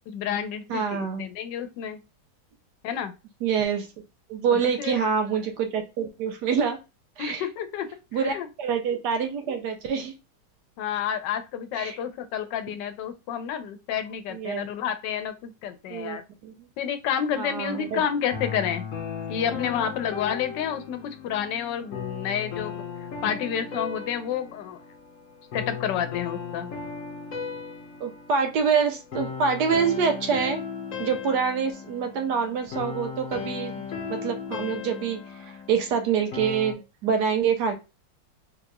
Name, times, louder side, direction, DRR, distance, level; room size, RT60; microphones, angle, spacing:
voice 1, 0.1-2.0 2.8-3.1 4.5-5.0 7.2-8.5 10.8-16.2 16.8-18.9 19.3-22.8 23.2-24.8 25.5-26.7, left 8 dB, 80° left, 10 dB, 1.2 m, -30 dB
voice 2, 0.7-1.3 3.4-3.9 4.3-6.8 7.2-7.4 8.1-10.1 11.8-12.0 14.3-14.7 15.9-16.2 16.4-16.7 17.3-18.0 28.0-30.6 31.0-37.7, right 6 dB, 70° right, 5 dB, 1.3 m, -26 dB
sound 1, 17.8-36.7, left 6 dB, 60° left, 0.9 m, -36 dB
3.8 x 2.9 x 2.2 m, 0.27 s
omnidirectional pair, 1.9 m